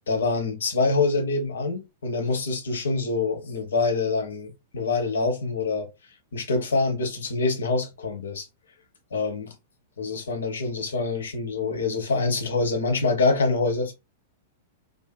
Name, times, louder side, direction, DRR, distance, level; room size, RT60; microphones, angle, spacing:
voice 1, 0.1-5.9 6.3-8.5 9.1-9.5 10.0-13.9, left 3 dB, 65° left, 0.7 m, -25 dB
2.6 x 2.3 x 2.2 m
figure-of-eight pair, 100°, 0 cm